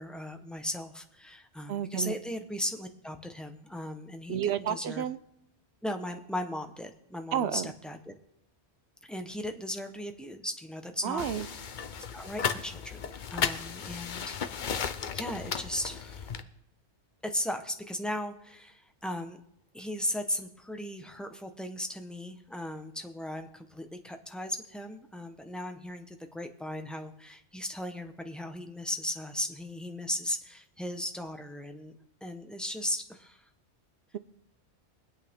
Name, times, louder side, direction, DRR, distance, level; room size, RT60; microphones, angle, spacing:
voice 1, 0.0-5.0 5.8-8.1 9.1-11.7 12.1-14.4 15.1-16.3 17.2-19.4 19.7-31.9 32.2-33.5, left 1 dB, ahead, 0.9 m, -37 dB
voice 2, 1.7-2.1 4.3-5.2 7.3-7.7 11.0-11.5, right 9 dB, 70° right, 0.9 m, -30 dB
sound 1, 11.2-16.4, left 7 dB, 50° left, 0.8 m, -35 dB
23.0 x 8.6 x 3.6 m
omnidirectional pair, 1.2 m